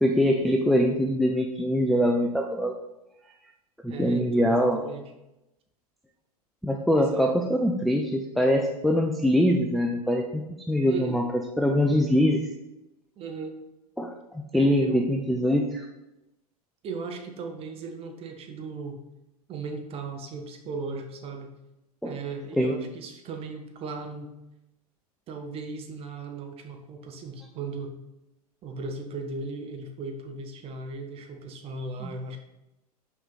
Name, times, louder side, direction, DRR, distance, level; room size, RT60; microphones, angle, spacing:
voice 1, 0.0-2.7 3.8-4.8 6.6-12.4 14.0-15.9 22.0-22.1 22.6-22.8 32.0-32.1, equal, ahead, 1 dB, 0.5 m, -23 dB
voice 2, 3.9-5.1 6.9-7.4 10.9-11.2 13.2-13.6 14.5-15.1 16.8-19.0 19.5-21.5 22.0-24.3 25.3-27.9 28.6-32.4, right 3 dB, 30° right, 4 dB, 1.2 m, -37 dB
6.1 x 4.7 x 5.6 m, 0.92 s
figure-of-eight pair, 90°, 20 cm